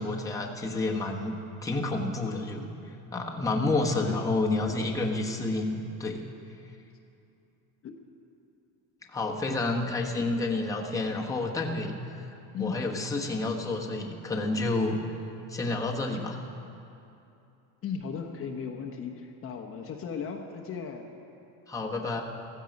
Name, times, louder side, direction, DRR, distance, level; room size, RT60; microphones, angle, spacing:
voice 1, 0.0-1.3 1.6-2.7 3.1-6.3 9.1-12.0 12.6-15.0 15.5-16.4 21.7-22.2, left 2 dB, 10° left, 0 dB, 1.1 m, -29 dB
voice 2, 4.0-4.4 7.8-8.0 9.5-9.8 12.5-12.9 17.8-21.1, left 6 dB, 35° left, 3 dB, 1.0 m, -36 dB
15.5 x 14.5 x 5.2 m, 2.7 s
cardioid pair, 135°, 37 cm